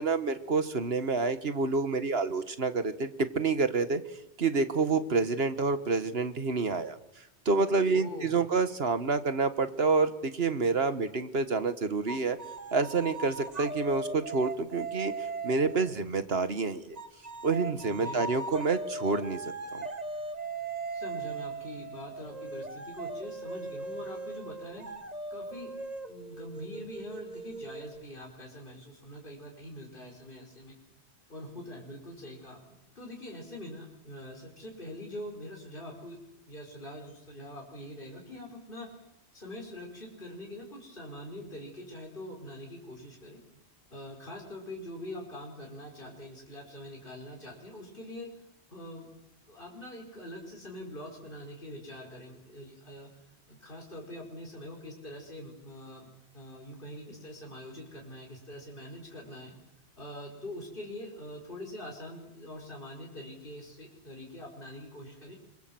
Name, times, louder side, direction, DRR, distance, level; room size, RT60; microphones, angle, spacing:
voice 1, 0.0-4.0 4.4-7.0 7.5-12.4 12.7-17.0 17.4-19.4 19.7-19.8, right 4 dB, 65° right, 11 dB, 1.8 m, -28 dB
voice 2, 7.9-8.4 17.9-18.3 20.9-24.9 25.3-30.8 31.3-36.2 36.5-38.9 39.3-43.4 43.9-48.3 48.7-49.1 49.5-53.1 53.5-56.1 56.3-59.5 60.0-65.3, left 1 dB, 50° left, 0 dB, 5.3 m, -44 dB
sound 1, 12.1-16.0 17.0-28.3, right 3 dB, 40° right, 1.7 m, -39 dB
27.5 x 24.5 x 7.9 m, 0.87 s
omnidirectional pair, 1.1 m